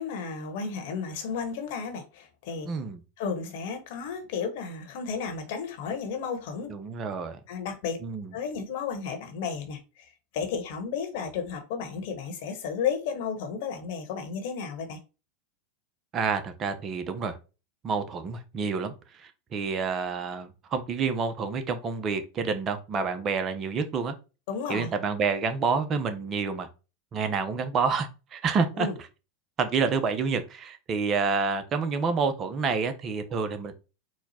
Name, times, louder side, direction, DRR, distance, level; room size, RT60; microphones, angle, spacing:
voice 1, 0.0-2.7 3.2-6.7 7.5-8.0 8.3-10.0 10.3-15.0 24.5-24.9 28.8-28.9, left 6 dB, 65° left, 1.2 m, -33 dB
voice 2, 2.6-3.0 6.7-7.4 8.0-8.3 16.1-17.4 17.8-24.1 24.7-26.7 27.1-28.9 29.6-33.7, right 5 dB, 35° right, 0.8 m, -28 dB
4.3 x 2.3 x 4.2 m
hypercardioid pair, 95°, 0 cm